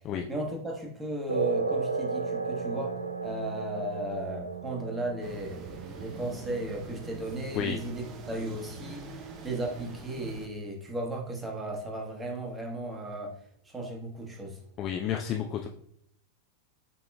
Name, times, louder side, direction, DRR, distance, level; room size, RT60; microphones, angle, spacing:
voice 1, 0.3-13.4 13.6-14.6, right 1 dB, 15° right, 0 dB, 1.2 m, -35 dB
sound 1, 1.3-8.3, right 4 dB, 80° right, 0.4 m, -34 dB
sound 2, 5.2-10.5, right 5 dB, 35° right, 0.6 m, -45 dB
voice 2, 14.8-15.7, left 8 dB, 35° left, 3 dB, 0.3 m, -31 dB
6.7 x 3.0 x 2.3 m, 0.69 s
figure-of-eight pair, 90°, 0 cm